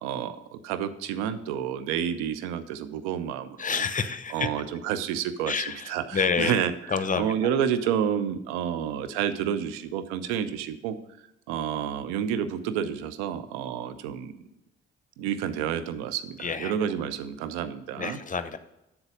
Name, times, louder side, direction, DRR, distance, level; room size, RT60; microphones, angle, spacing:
voice 1, 0.0-3.9 4.3-6.7 7.2-11.0 11.5-14.3 15.2-18.2, right 9 dB, 70° right, 12 dB, 0.7 m, -29 dB
voice 2, 3.6-4.5 5.5-6.6 6.9-7.3 16.4-16.7 18.0-18.6, left 5 dB, 25° left, 12 dB, 0.8 m, -28 dB
8.0 x 5.9 x 5.0 m, 0.92 s
figure-of-eight pair, 40°, 31 cm